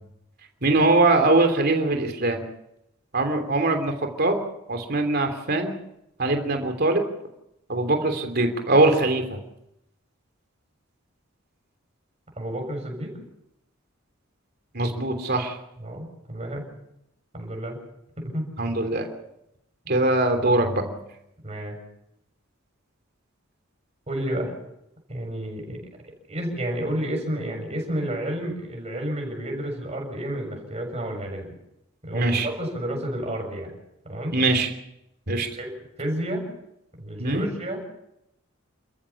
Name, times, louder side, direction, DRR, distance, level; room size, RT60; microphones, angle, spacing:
voice 1, 0.6-2.4 3.1-4.4 4.7-5.7 6.2-7.0 7.7-9.4 14.7-15.6 18.6-19.1 19.9-20.9 32.1-32.5 34.3-34.7 35.3-35.5 37.2-37.5, right 2 dB, 50° right, 5 dB, 3.2 m, -22 dB
voice 2, 12.3-13.2 15.8-16.7 17.3-17.8 18.2-18.5 21.4-21.8 24.1-24.5 25.1-25.8 26.3-31.5 32.0-33.7 34.0-34.4 35.6-35.7 36.0-36.5 37.0-37.8, right 1 dB, 30° right, 1 dB, 6.9 m, -30 dB
29.5 x 14.0 x 7.1 m, 0.84 s
head